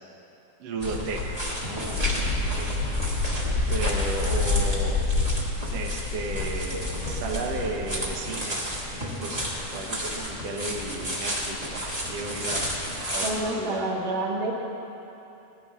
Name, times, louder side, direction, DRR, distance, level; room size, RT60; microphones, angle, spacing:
voice 1, 0.6-4.9 5.7-8.6 9.2-11.8 12.1-12.7 13.1-13.9, right 2 dB, 75° right, 0 dB, 1.4 m, -34 dB
sound 1, 0.8-13.4, left 2 dB, 25° right, 0.7 m, -28 dB
voice 2, 13.2-14.5, right 2 dB, 55° right, -3 dB, 3.2 m, -28 dB
19.5 x 16.0 x 3.7 m, 2.9 s
omnidirectional pair, 4.8 m